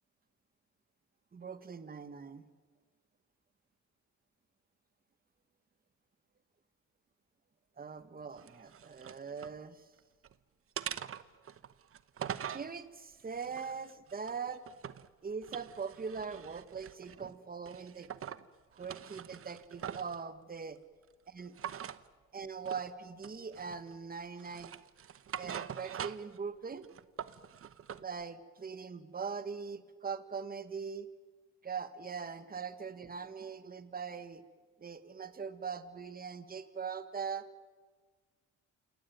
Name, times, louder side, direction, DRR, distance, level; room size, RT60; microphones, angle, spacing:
voice 1, 1.3-2.4 7.8-9.8 12.5-14.6 15.2-18.1 18.7-20.8 21.3-21.5 22.3-24.7 25.4-26.9 28.0-31.1 31.6-34.4 34.8-37.5, right 6 dB, 30° right, 11 dB, 1.6 m, -41 dB
sound 1, 8.4-9.6 10.0-10.3 10.8-12.7 13.3-15.1 15.4-17.2 17.7-18.4 18.8-20.2 21.6-22.0 22.7-22.9 23.2-23.9 24.4-26.4 26.7-28.0, right 9 dB, 45° right, 1.0 m, -43 dB
28.0 x 18.0 x 9.3 m, 1.5 s
cardioid pair, 90°, 30 cm